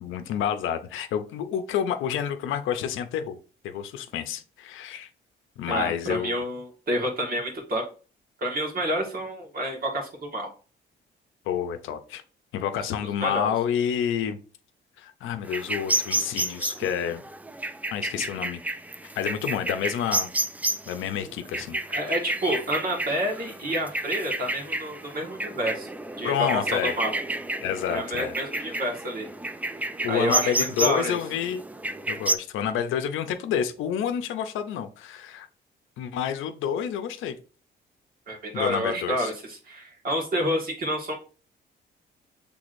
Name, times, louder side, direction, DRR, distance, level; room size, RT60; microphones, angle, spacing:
voice 1, 0.0-3.4 3.6-5.1 5.6-6.3 11.5-12.2 12.5-14.4 15.0-17.2 17.9-18.6 19.2-20.3 20.9-21.8 26.2-26.9 27.6-28.7 30.0-31.6 32.1-35.5 36.0-37.3 38.5-39.3, left 8 dB, 85° left, 9 dB, 0.6 m, -29 dB
voice 2, 5.7-7.8 8.4-10.5 13.0-13.5 21.9-25.9 26.2-27.2 27.9-29.3 30.1-31.2 38.3-41.1, equal, 45° right, 1 dB, 1.6 m, -29 dB
sound 1, 15.5-32.4, right 2 dB, 10° right, 0.3 m, -31 dB
6.1 x 3.4 x 2.5 m, 0.37 s
cardioid pair, 90°, 20 cm